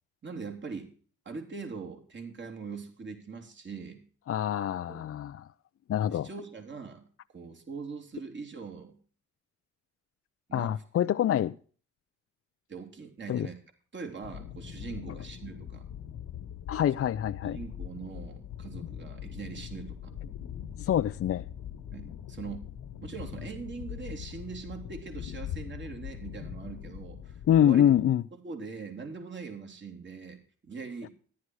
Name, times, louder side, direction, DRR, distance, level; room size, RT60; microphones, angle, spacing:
voice 1, 0.2-0.9 1.3-4.0 4.9-5.0 6.1-7.0 7.3-8.9 10.5-11.1 12.7-13.6 13.9-15.8 17.4-20.1 21.9-22.6 23.0-27.9 28.4-31.1, right 5 dB, 40° right, 3.5 m, -42 dB
voice 2, 4.3-5.5 5.9-6.3 10.5-11.5 13.3-13.5 16.7-17.6 20.8-21.5 27.5-28.2, left 10 dB, 50° left, 0.6 m, -25 dB
sound 1, 14.2-27.6, left 9 dB, 80° left, 1.4 m, -42 dB
14.0 x 11.5 x 4.8 m
cardioid pair, 90°, 30 cm